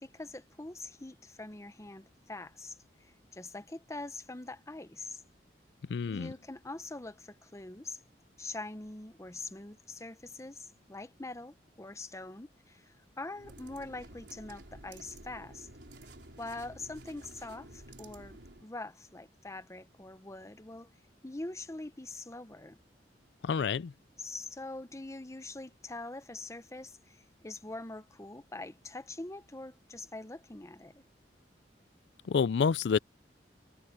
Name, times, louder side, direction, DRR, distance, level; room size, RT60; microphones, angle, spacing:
voice 1, 0.0-5.2 6.1-8.0 8.4-15.7 16.0-16.1 16.4-20.9 21.2-22.8 24.2-31.0, left 2 dB, 15° left, 0.9 m, -44 dB
voice 2, 5.9-6.3 23.4-23.9 32.3-33.0, left 6 dB, 75° left, 0.4 m, -28 dB
sound 1, 13.3-18.7, right 1 dB, 85° right, 4.0 m, -51 dB
head